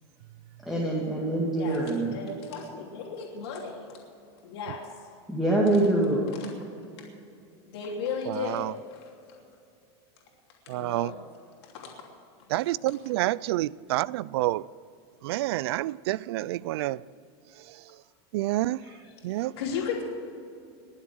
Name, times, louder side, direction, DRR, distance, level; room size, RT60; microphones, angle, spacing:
voice 1, 0.6-2.1 5.3-6.3, right 2 dB, ahead, 1.9 m, -25 dB
voice 2, 2.1-4.0 4.4-4.9 6.3-6.5 7.7-9.4 10.7-11.2 11.6-11.9 18.8-20.0, left 5 dB, 75° left, 2.9 m, -36 dB
voice 3, 8.3-8.7 10.7-11.1 12.5-14.7 15.2-17.0 17.7-17.8 18.3-18.8 19.2-19.5, right 16 dB, 70° right, 0.4 m, -28 dB
21.0 x 7.4 x 7.8 m
supercardioid pair, 155°, 14 cm